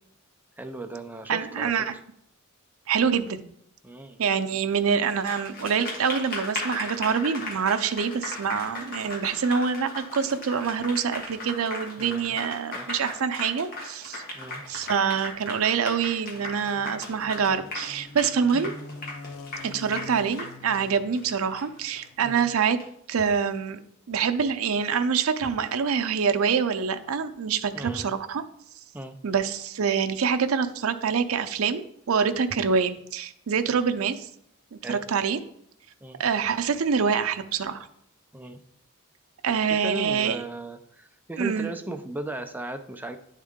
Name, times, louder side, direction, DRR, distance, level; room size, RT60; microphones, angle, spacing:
voice 1, 0.6-2.0 3.8-4.2 12.0-12.4 12.7-12.9 14.3-14.6 18.5-18.7 22.2-22.5 27.7-28.1 28.9-29.1 33.7-33.8 34.8-35.0 36.0-36.2 38.3-38.6 39.7-43.2, right 2 dB, 10° right, 7 dB, 0.4 m, -37 dB
voice 2, 1.3-2.0 2.9-3.4 4.2-14.2 14.7-18.7 19.6-22.8 23.1-23.8 24.1-28.4 29.2-34.3 34.7-35.4 36.2-37.9 39.4-40.4 41.4-41.7, right 6 dB, 80° right, 9 dB, 0.5 m, -26 dB
Applause, 5.1-22.8, left 2 dB, 45° left, 1.4 m, -37 dB
sound 1, 14.7-22.3, left 4 dB, 90° left, 0.6 m, -46 dB
10.5 x 3.7 x 3.6 m, 0.72 s
head